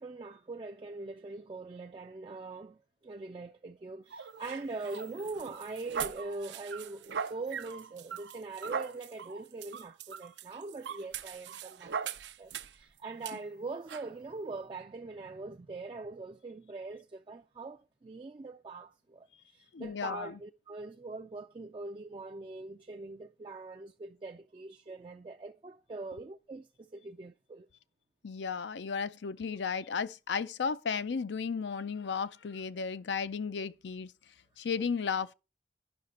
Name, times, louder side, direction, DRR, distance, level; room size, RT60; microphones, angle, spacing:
voice 1, 0.0-27.7, right 3 dB, 30° right, 0.3 m, -42 dB
sound 1, 4.1-12.8 13.2-13.4 13.9-14.1, right 6 dB, 85° right, 0.6 m, -40 dB
voice 2, 19.7-20.4 28.2-34.1 34.6-35.3, left 5 dB, 85° left, 0.5 m, -34 dB
9.7 x 5.8 x 4.1 m
head